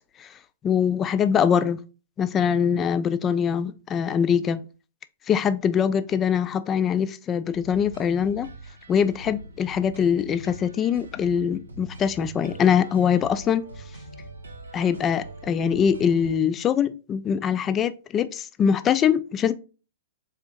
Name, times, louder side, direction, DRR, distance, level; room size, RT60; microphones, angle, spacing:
voice 1, 0.6-1.8 2.2-4.6 5.3-8.5 8.9-13.6 14.7-19.5, left 7 dB, 20° left, 0.3 m, -23 dB
sound 1, 7.5-16.4, right 2 dB, 75° right, 0.7 m, -43 dB
4.1 x 3.5 x 2.9 m
figure-of-eight pair, 110°, 0 cm